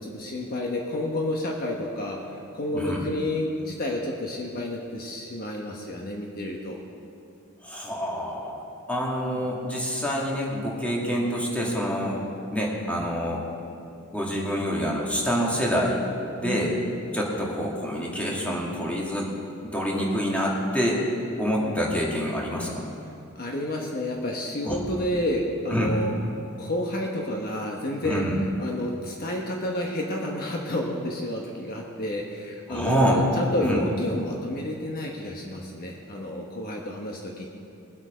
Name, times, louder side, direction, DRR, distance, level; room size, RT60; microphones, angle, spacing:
voice 1, 0.0-2.2 2.5-6.8 9.3-9.4 16.4-16.8 21.6-21.8 23.4-26.1 26.6-28.2 28.6-37.5, left 1 dB, 45° left, 0 dB, 1.2 m, -30 dB
voice 2, 7.6-8.5 8.9-12.2 12.5-13.4 14.1-16.0 16.4-16.8 17.1-19.3 19.6-21.0 21.4-22.8 24.6-24.8 25.7-25.9 28.0-28.4 32.7-33.2 33.6-33.8, equal, 5° left, -4 dB, 2.1 m, -26 dB
21.5 x 8.1 x 5.2 m, 2.6 s
head